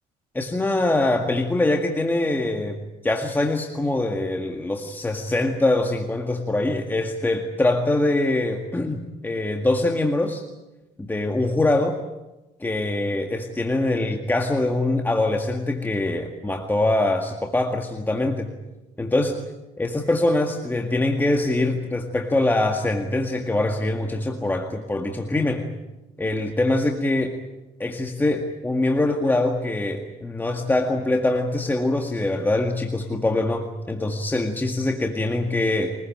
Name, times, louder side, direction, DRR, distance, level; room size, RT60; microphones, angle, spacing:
voice 1, 0.3-10.4 11.0-12.0 12.6-18.5 19.0-19.4 19.8-25.7 26.2-27.4 27.8-35.9, left 2 dB, 10° left, 3 dB, 1.9 m, -23 dB
23.5 x 20.5 x 8.9 m, 1.0 s
cardioid pair, 110°, 17 cm